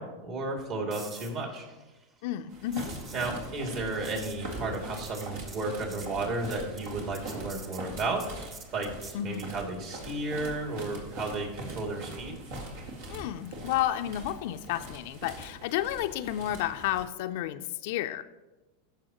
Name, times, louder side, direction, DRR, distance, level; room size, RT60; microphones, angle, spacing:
voice 1, 0.0-1.7 3.1-12.3, right 2 dB, 50° right, 0 dB, 2.6 m, -33 dB
sound 1, 0.9-9.6 13.7-14.0, right 4 dB, 35° right, 1.3 m, -49 dB
voice 2, 2.2-2.9 9.1-9.5 13.1-18.2, left 12 dB, 65° left, 10 dB, 0.4 m, -31 dB
sound 2, 2.5-17.1, right 1 dB, 80° right, 2.1 m, -42 dB
16.0 x 6.3 x 3.0 m, 1.1 s
hypercardioid pair, 105°, 0 cm